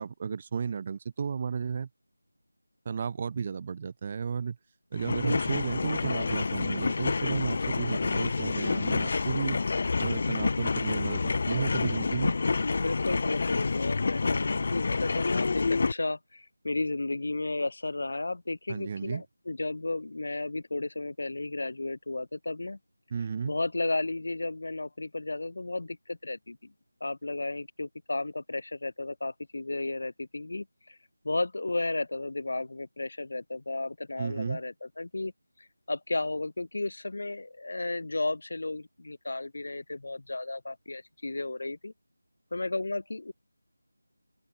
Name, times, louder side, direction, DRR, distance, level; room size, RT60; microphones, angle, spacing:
voice 1, 0.0-1.9 2.8-4.6 4.9-9.6 10.0-12.3 18.7-19.2 23.1-23.5 34.2-34.6, right 6 dB, 20° right, 0.5 m, -33 dB
sound 1, 4.9-15.9, left 4 dB, 30° left, 0.3 m, -28 dB
voice 2, 5.0-5.6 12.6-22.8 23.4-26.7 27.0-31.0 31.2-35.3 35.6-41.9 42.5-43.3, left 2 dB, 55° left, 1.5 m, -33 dB
open air
figure-of-eight pair, 175°, 0 cm